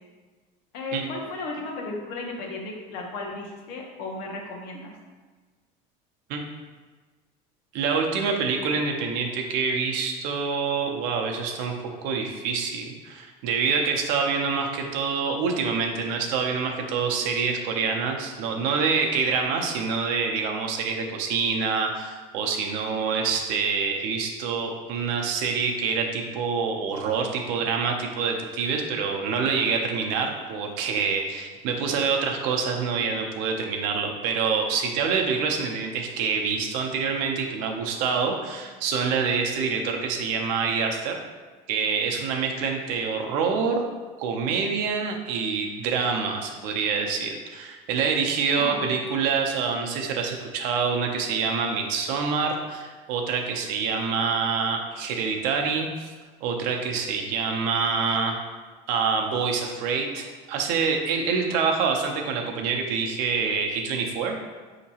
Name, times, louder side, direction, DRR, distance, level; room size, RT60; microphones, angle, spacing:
voice 1, 0.7-4.9 48.6-48.9, left 3 dB, 55° left, 0 dB, 0.8 m, -35 dB
voice 2, 7.7-11.7 12.0-41.2 41.7-43.8 44.2-56.1 56.4-58.5 58.9-64.4, right 5 dB, 60° right, 2 dB, 0.6 m, -26 dB
5.4 x 2.9 x 2.8 m, 1.4 s
cardioid pair, 170°, 16 cm